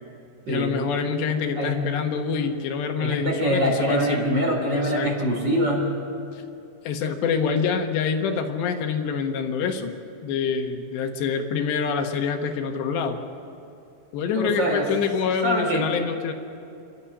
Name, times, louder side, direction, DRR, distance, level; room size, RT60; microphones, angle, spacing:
voice 1, 0.5-4.3 4.7-5.1 6.3-6.4 6.8-10.0 10.2-13.2 14.1-16.3, left 6 dB, 80° left, 5 dB, 3.6 m, -26 dB
voice 2, 3.0-5.9 14.4-14.8 15.4-15.9, equal, 25° right, 1 dB, 4.2 m, -24 dB
28.5 x 13.0 x 9.9 m, 2.7 s
omnidirectional pair, 5.0 m